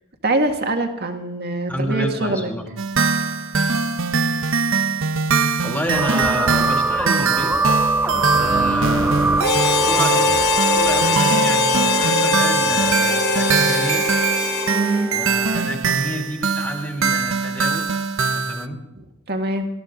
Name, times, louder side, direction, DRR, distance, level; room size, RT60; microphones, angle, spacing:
voice 1, 0.2-2.5 8.5-8.8 14.7-15.1 19.3-19.7, right 2 dB, 50° right, 4 dB, 2.0 m, -23 dB
voice 2, 1.7-2.7 5.4-7.5 8.3-9.2 9.8-14.0 15.1-17.9 18.2-18.8, equal, 10° left, 1 dB, 2.7 m, -29 dB
sound 1, 2.8-18.7, right 5 dB, 65° right, 0.7 m, -22 dB
sound 2, 5.9-15.6, right 2 dB, 5° right, 0.5 m, -23 dB
Harmonica, 9.4-15.0, left 4 dB, 50° left, 1.1 m, -21 dB
20.0 x 14.0 x 3.9 m, 0.92 s
head